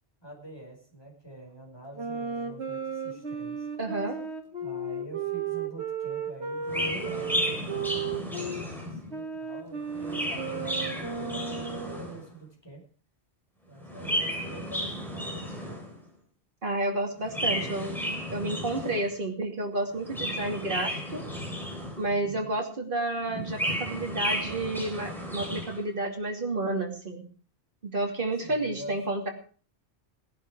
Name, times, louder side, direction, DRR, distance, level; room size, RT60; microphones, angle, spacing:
voice 1, 0.2-3.7 4.6-7.4 7.8-12.8 13.7-15.9 17.3-17.7 22.1-22.5 28.4-29.1, right 1 dB, 25° left, -1 dB, 5.2 m, -46 dB
sound 1, 2.0-8.7 9.1-12.1, right 5 dB, 75° right, 2.1 m, -34 dB
voice 2, 3.8-4.2 16.6-21.2 22.0-27.2 27.8-29.3, right 2 dB, 50° right, 2 dB, 3.0 m, -31 dB
Chirp tweet, 6.7-9.1 9.8-12.3 13.8-16.0 17.2-19.1 19.9-22.2 23.3-25.8, equal, ahead, 4.3 m, -33 dB
18.0 x 11.0 x 4.8 m, 0.42 s
omnidirectional pair, 1.1 m